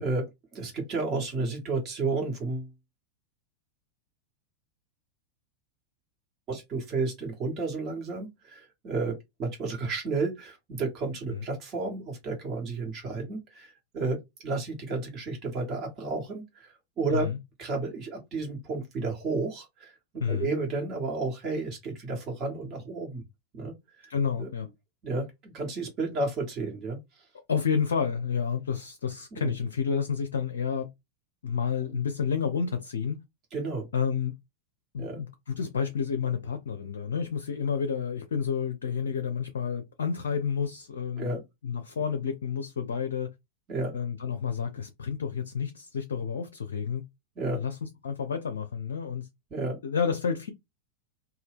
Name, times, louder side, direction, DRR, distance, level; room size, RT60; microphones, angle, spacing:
voice 1, 0.0-2.7 6.5-17.3 17.6-19.9 20.3-23.2 23.5-24.1 24.4-24.5 25.0-27.0 29.3-29.5 33.5-33.9 35.0-35.2 41.2-41.4 43.7-43.9 47.4-47.6 49.5-49.8, right 3 dB, 30° right, 1.3 m, -32 dB
voice 2, 24.1-24.7 27.5-30.9 31.4-33.2 33.9-34.3 34.9-43.3 43.9-47.0 47.5-49.3 49.8-50.5, left 6 dB, 65° left, 0.4 m, -30 dB
2.7 x 2.2 x 3.4 m
figure-of-eight pair, 90°, 0 cm